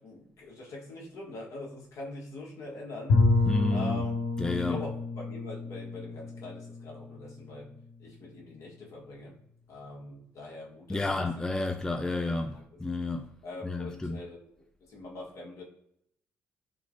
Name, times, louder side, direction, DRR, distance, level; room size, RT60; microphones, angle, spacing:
voice 1, 0.0-3.2 3.7-4.1 4.5-7.7 8.0-9.4 9.7-11.5 12.1-12.2 12.5-12.8 13.4-14.5 14.9-15.6, left 2 dB, 55° left, 1.3 m, -43 dB
Bowed string instrument, 3.1-7.9, left 3 dB, 70° left, 0.7 m, -29 dB
voice 2, 3.4-4.1 4.4-4.9 10.9-12.5 12.8-13.3 13.6-14.2, left 2 dB, 10° left, 0.4 m, -30 dB
3.9 x 2.9 x 2.6 m
figure-of-eight pair, 40°, 6 cm